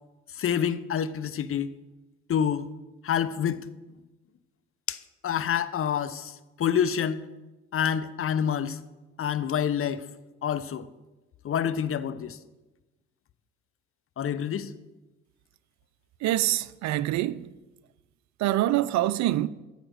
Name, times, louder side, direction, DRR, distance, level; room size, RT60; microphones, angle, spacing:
voice 1, 0.4-1.7 2.3-2.7 3.0-3.6 4.9-5.0 5.2-7.2 7.7-8.8 9.2-10.1 10.4-10.9 11.4-12.4 14.2-14.7, left 8 dB, 40° left, 0.7 m, -27 dB
voice 2, 16.2-17.5 18.4-19.5, right 15 dB, 60° right, 0.5 m, -25 dB
13.5 x 4.9 x 6.4 m
hypercardioid pair, 50°, 33 cm